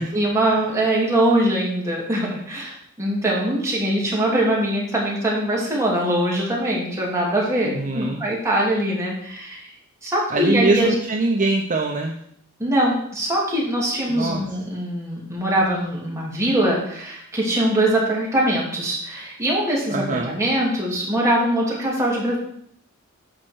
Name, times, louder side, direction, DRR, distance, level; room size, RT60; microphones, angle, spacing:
voice 1, 0.0-9.7 10.0-10.9 12.6-22.4, right 1 dB, 15° right, -4 dB, 2.8 m, -22 dB
voice 2, 7.6-8.2 10.3-12.1 14.1-14.4 19.9-20.4, right 2 dB, 40° right, 1 dB, 0.7 m, -23 dB
12.5 x 4.4 x 4.7 m, 0.67 s
head